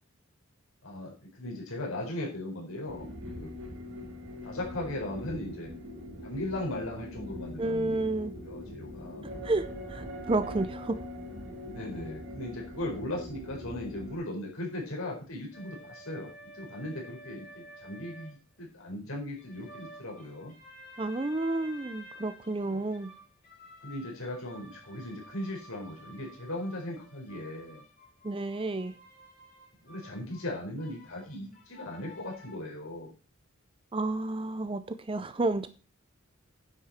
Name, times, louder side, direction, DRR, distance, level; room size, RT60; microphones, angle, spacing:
voice 1, 0.8-3.5 4.4-5.7 6.2-8.0 8.4-9.3 11.6-20.5 22.6-22.8 23.8-27.8 29.8-33.1, left 1 dB, 80° left, -2 dB, 4.3 m, -38 dB
sound 1, 2.9-14.2, left 1 dB, 75° right, 3.9 m, -42 dB
voice 2, 7.6-8.3 9.4-11.0 21.0-23.1 28.2-28.9 33.9-35.7, right 2 dB, 25° right, 12 dB, 0.5 m, -31 dB
sound 2, 15.5-18.3 19.4-32.6, equal, 40° left, 3.8 m, -51 dB
9.7 x 8.1 x 4.3 m, 0.34 s
head